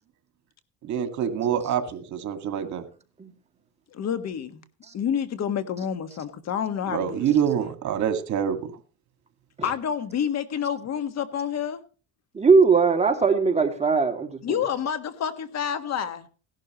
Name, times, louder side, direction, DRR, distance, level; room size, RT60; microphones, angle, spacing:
voice 1, 0.8-2.8 6.9-8.6, right 8 dB, 65° right, 8 dB, 2.0 m, -26 dB
voice 2, 3.9-4.6 4.9-7.4 9.6-11.8 14.4-16.3, left 8 dB, 55° left, 11 dB, 1.6 m, -28 dB
voice 3, 12.3-14.6, right 4 dB, 20° right, 3 dB, 2.5 m, -20 dB
17.0 x 11.5 x 3.1 m, 0.35 s
cardioid pair, 110°, 31 cm